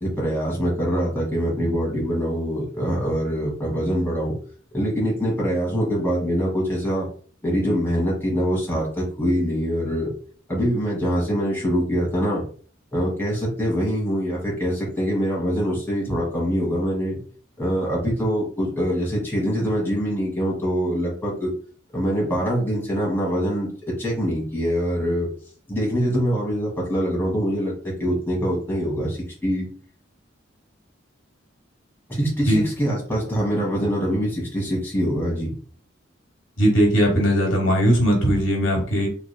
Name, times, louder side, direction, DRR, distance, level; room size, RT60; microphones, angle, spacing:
voice 1, 0.0-4.3 4.7-7.1 7.4-10.1 10.5-12.4 12.9-17.2 17.6-21.5 21.9-23.7 24.0-25.3 25.7-29.7 32.1-35.5, equal, 10° left, -4 dB, 1.6 m, -24 dB
voice 2, 36.6-39.1, equal, 80° left, 0 dB, 1.2 m, -19 dB
3.6 x 3.3 x 2.2 m, 0.43 s
head